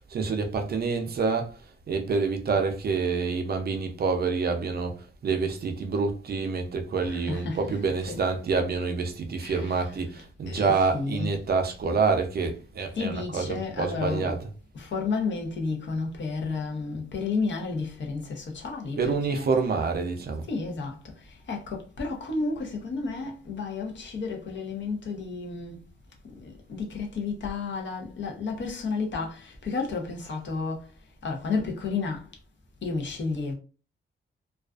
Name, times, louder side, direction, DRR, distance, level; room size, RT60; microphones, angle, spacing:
voice 1, 0.1-1.6 1.9-14.5 19.0-20.5, right 4 dB, 50° right, 0.4 m, -27 dB
voice 2, 7.1-7.6 8.1-8.2 9.4-9.9 10.5-11.3 12.9-14.4 14.7-19.0 19.3-19.5 20.5-20.9 21.5-25.8 26.4-30.8 31.2-32.2 32.8-33.5, left 4 dB, 60° left, 0.7 m, -31 dB
2.4 x 2.3 x 2.3 m
wide cardioid pair, 135°, 21 cm